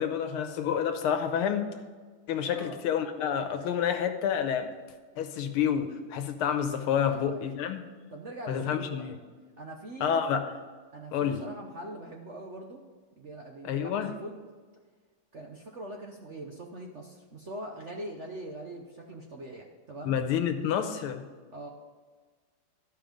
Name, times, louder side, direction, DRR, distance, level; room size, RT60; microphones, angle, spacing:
voice 1, 0.0-1.7 2.3-4.7 5.2-7.8 8.5-9.2 10.0-10.5 11.1-11.4 13.6-14.1 20.0-21.2, left 8 dB, 85° left, 7 dB, 1.8 m, -29 dB
voice 2, 7.1-7.4 8.1-9.1 9.6-10.2 10.9-12.8 13.2-14.4 15.3-20.2 21.5-21.7, right 1 dB, 50° right, 1 dB, 0.8 m, -42 dB
12.5 x 5.5 x 5.2 m, 1.5 s
omnidirectional pair, 2.3 m